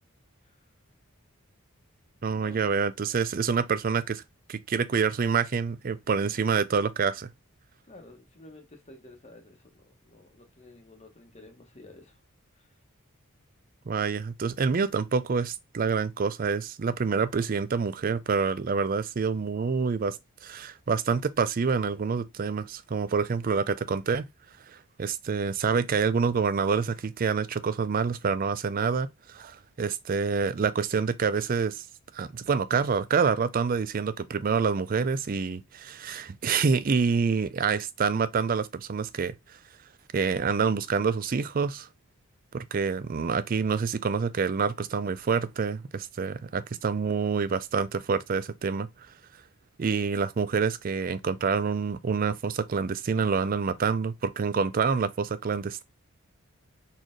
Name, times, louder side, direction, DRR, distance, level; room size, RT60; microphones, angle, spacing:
voice 1, 2.2-4.2 4.5-7.3 13.9-20.2 20.4-24.3 25.0-31.8 32.1-39.3 40.1-41.9 42.5-48.9 49.8-55.8, right 5 dB, 40° right, 0.4 m, -27 dB
voice 2, 7.9-12.2 12.6-12.7, left 2 dB, 30° left, 1.1 m, -51 dB
4.3 x 3.1 x 3.7 m
head